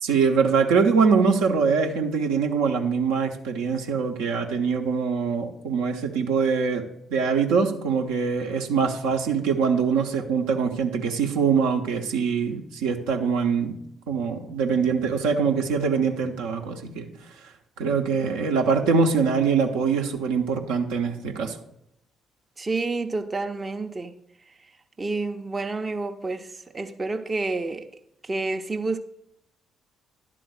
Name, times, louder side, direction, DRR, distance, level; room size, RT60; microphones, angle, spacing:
voice 1, 0.0-6.8 7.1-13.8 14.1-17.1 17.8-21.6, right 5 dB, 65° right, 0.7 m, -23 dB
voice 2, 22.6-24.1 25.0-27.9 28.2-29.0, right 3 dB, 25° right, 0.6 m, -29 dB
11.0 x 3.8 x 6.4 m
figure-of-eight pair, 45°, 0 cm